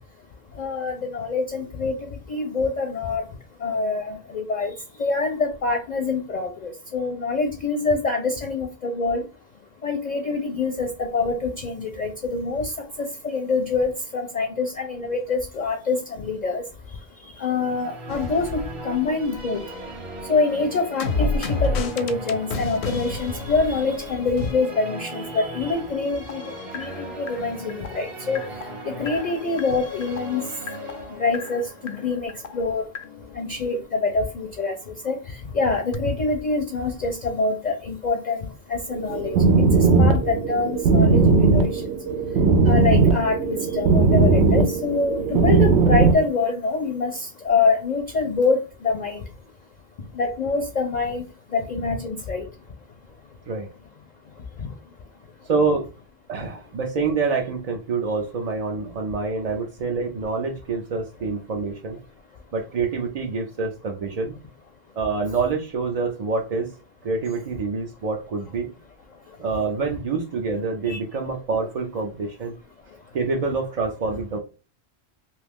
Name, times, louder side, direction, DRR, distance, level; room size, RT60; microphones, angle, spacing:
voice 1, 0.6-2.0 2.3-3.2 3.6-4.7 5.0-9.2 9.8-12.7 13.0-16.6 17.4-19.6 20.3-28.4 28.8-30.4 31.2-32.8 33.4-34.8 35.0-39.3 39.7-41.8 42.6-49.2 50.1-51.2 51.5-52.4 54.6-54.7 70.9-71.0, left 4 dB, 50° left, 4 dB, 0.6 m, -25 dB
sound 1, 17.5-33.5, right 1 dB, 30° right, 0.9 m, -38 dB
sound 2, 18.1-19.6 19.9-24.5 26.2-34.2 35.9-36.0, left 3 dB, 85° left, 0.9 m, -31 dB
sound 3, 38.9-46.2, right 4 dB, 80° right, 0.9 m, -18 dB
voice 2, 55.5-55.9 56.3-62.0 62.5-64.3 65.0-66.8 67.0-68.7 69.4-72.5 73.1-74.4, right 4 dB, 55° right, 2 dB, 0.4 m, -26 dB
2.9 x 2.4 x 3.4 m, 0.33 s
omnidirectional pair, 1.1 m